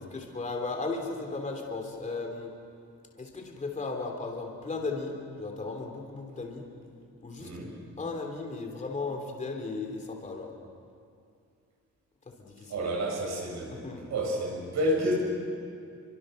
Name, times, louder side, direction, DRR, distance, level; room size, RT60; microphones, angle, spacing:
voice 1, 0.0-2.5 3.2-6.7 7.2-7.5 8.0-10.5 12.4-12.9 13.7-14.0, left 3 dB, 25° left, 1 dB, 3.1 m, -36 dB
voice 2, 7.4-7.7 12.7-13.8 14.1-15.1, equal, 70° right, 0 dB, 7.1 m, -29 dB
29.5 x 24.5 x 6.5 m, 2.4 s
wide cardioid pair, 180°, 30 cm